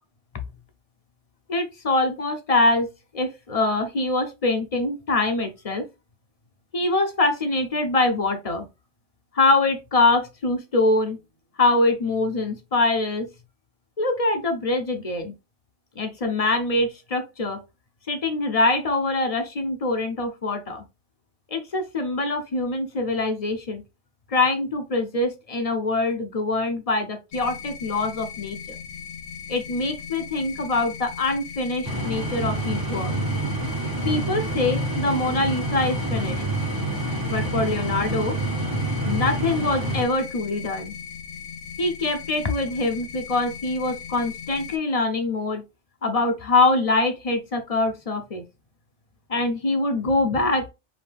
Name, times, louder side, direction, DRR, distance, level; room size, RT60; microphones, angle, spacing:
voice 1, 1.5-2.9 3.1-5.8 6.7-8.6 9.3-11.2 11.6-13.3 14.0-15.3 16.0-17.6 18.1-20.8 21.5-23.8 24.3-28.6 29.5-33.1 34.0-36.4 37.3-38.4 39.1-40.9 41.8-45.6 46.0-48.4 49.3-50.7, left 2 dB, 40° left, 0.6 m, -24 dB
sound 1, 27.3-44.8, left 7 dB, 80° left, 0.9 m, -38 dB
sound 2, 31.8-40.0, right 2 dB, 25° right, 0.5 m, -27 dB
4.9 x 2.7 x 3.4 m
omnidirectional pair, 1.2 m